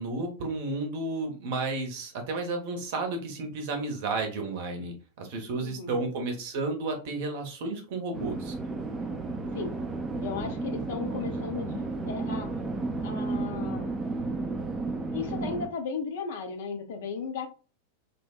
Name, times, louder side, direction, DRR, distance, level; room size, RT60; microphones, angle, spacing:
voice 1, 0.0-8.5 11.1-11.5, right 3 dB, 50° right, 4 dB, 0.7 m, -32 dB
voice 2, 5.6-6.1 9.5-9.8 10.2-12.5 13.0-13.9 15.1-17.5, left 5 dB, 55° left, 5 dB, 0.5 m, -36 dB
sound 1, 8.1-15.7, right 3 dB, 15° right, 0.4 m, -33 dB
2.7 x 2.1 x 2.3 m, 0.35 s
figure-of-eight pair, 90°, 0 cm